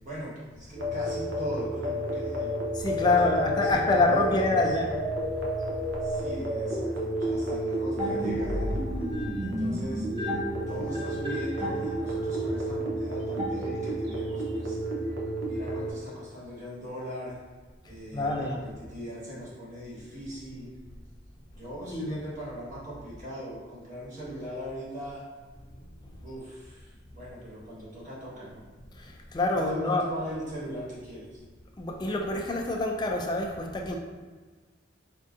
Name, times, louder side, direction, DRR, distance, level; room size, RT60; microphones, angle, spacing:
voice 1, 0.0-2.6 3.0-4.8 6.0-8.8 9.4-10.1 10.7-14.8 15.4-17.4 17.8-20.7 21.5-25.2 26.2-28.6 29.5-31.4, equal, 40° right, -7 dB, 1.3 m, -40 dB
sound 1, 0.8-15.9, right 1 dB, 75° right, 0.6 m, -31 dB
voice 2, 2.7-5.0 18.1-18.7 21.9-22.2 29.0-30.0 31.8-34.0, left 2 dB, 20° left, 1 dB, 0.3 m, -26 dB
sound 2, 8.0-14.2, left 1 dB, 25° right, 0.5 m, -35 dB
4.3 x 2.7 x 2.4 m, 1.4 s
head